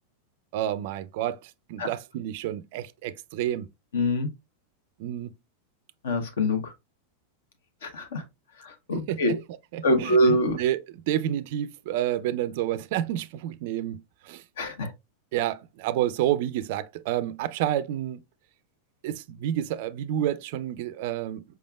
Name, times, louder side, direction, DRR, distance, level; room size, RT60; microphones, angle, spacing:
voice 1, 0.5-3.7 5.0-5.3 9.1-9.4 9.7-10.2 10.5-14.4 15.3-18.2 19.0-21.4, right 12 dB, 50° right, 0.3 m, -29 dB
voice 2, 3.9-4.3 6.0-6.7 7.8-8.2 8.6-9.3 9.8-10.6 14.6-14.9, equal, 60° left, 0.9 m, -24 dB
4.8 x 3.4 x 2.3 m
figure-of-eight pair, 90°, 0 cm